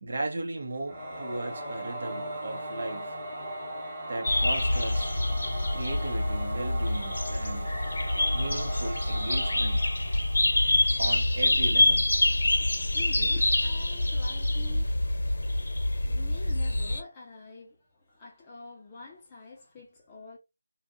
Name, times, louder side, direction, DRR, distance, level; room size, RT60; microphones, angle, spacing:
voice 1, 0.0-3.2 4.1-5.1 5.7-7.8 8.3-9.8 11.0-12.1, right 2 dB, 45° right, 0.9 m, -36 dB
Singing / Musical instrument, 0.9-10.9, right 1 dB, 10° right, 1.3 m, -38 dB
sound 1, 4.2-17.0, left 1 dB, 65° left, 0.9 m, -26 dB
voice 2, 12.6-14.9 16.0-20.4, left 3 dB, 15° left, 0.7 m, -46 dB
2.7 x 2.4 x 3.8 m
figure-of-eight pair, 175°, 0 cm